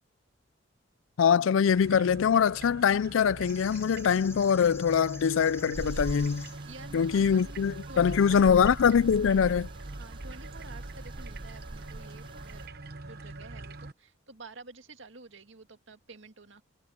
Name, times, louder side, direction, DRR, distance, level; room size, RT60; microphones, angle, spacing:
voice 1, 1.2-6.5 6.9-9.7, left 7 dB, 75° left, 0.4 m, -23 dB
sound 1, 1.7-13.9, right 2 dB, 50° right, 1.1 m, -43 dB
sound 2, 3.4-8.8, left 4 dB, 15° left, 3.7 m, -50 dB
sound 3, 5.7-12.7, right 2 dB, 25° right, 0.5 m, -42 dB
voice 2, 6.6-8.5 10.0-12.7 13.1-16.6, right 3 dB, 65° right, 2.0 m, -49 dB
head